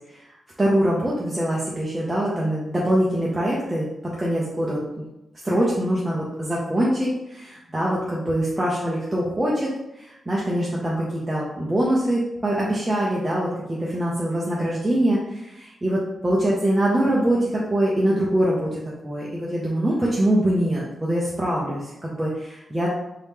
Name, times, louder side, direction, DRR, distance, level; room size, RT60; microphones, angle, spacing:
voice 1, 0.6-3.9 4.2-5.1 5.4-9.7 10.0-22.9, right 1 dB, 15° right, -6 dB, 0.6 m, -23 dB
3.1 x 2.8 x 3.5 m, 0.87 s
wide cardioid pair, 160°, 0 cm